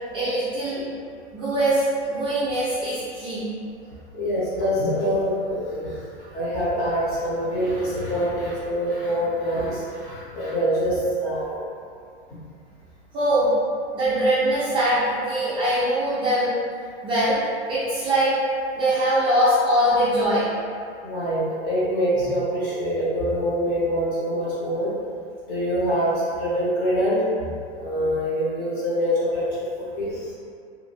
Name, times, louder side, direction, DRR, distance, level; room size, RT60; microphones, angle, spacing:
voice 1, 0.1-0.9 1.3-3.5 13.1-13.5 13.9-16.7 17.0-17.4 17.7-18.3 18.8-20.5, right 1 dB, 15° right, -13 dB, 0.4 m, -22 dB
voice 2, 4.1-6.0 6.3-11.6 21.0-25.0 25.5-27.5 27.7-29.4 29.8-30.3, equal, 30° left, -8 dB, 0.9 m, -25 dB
2.7 x 2.5 x 2.9 m, 2.3 s
hypercardioid pair, 145°, 33 cm